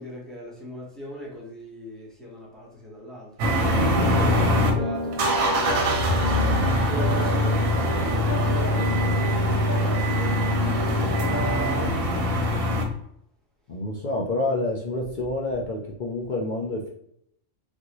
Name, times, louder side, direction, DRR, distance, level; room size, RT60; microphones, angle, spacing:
voice 1, 0.0-3.4 4.0-6.4 6.7-12.3, equal, ahead, 0.8 m, -40 dB
sound 1, 3.4-4.7 5.1-12.8, equal, 75° right, 1.1 m, -23 dB
sound 2, 3.7-11.9, equal, 45° right, 0.7 m, -30 dB
voice 2, 13.7-16.9, left 2 dB, 70° left, 0.4 m, -28 dB
3.5 x 2.6 x 2.9 m
omnidirectional pair, 1.4 m